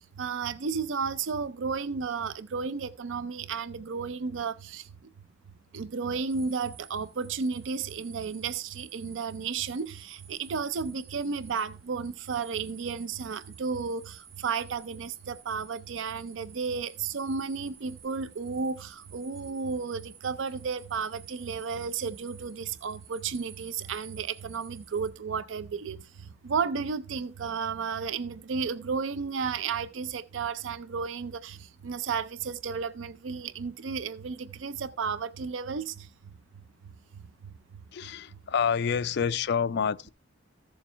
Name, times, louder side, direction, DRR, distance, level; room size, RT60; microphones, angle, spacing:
voice 1, 0.0-4.9 5.7-36.1 36.8-37.8, right 5 dB, 65° right, 0.5 m, -33 dB
sound 1, 6.3-25.1, right 8 dB, 80° right, 1.7 m, -53 dB
voice 2, 37.9-40.1, left 7 dB, 55° left, 0.4 m, -28 dB
14.5 x 7.1 x 3.3 m
head